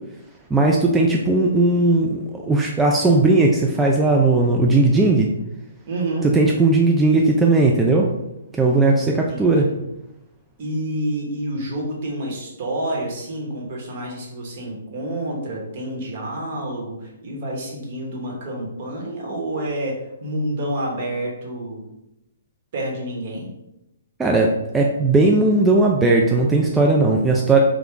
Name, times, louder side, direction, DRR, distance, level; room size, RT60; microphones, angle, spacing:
voice 1, 0.5-5.3 6.3-8.1 8.5-9.7 24.2-27.6, right 2 dB, 10° right, -1 dB, 0.3 m, -17 dB
voice 2, 5.8-6.3 9.3-9.8 10.6-19.9 20.2-21.9 22.7-23.5, right 1 dB, 50° right, -1 dB, 1.2 m, -28 dB
3.3 x 2.3 x 3.7 m, 0.88 s
hypercardioid pair, 135°, 0 cm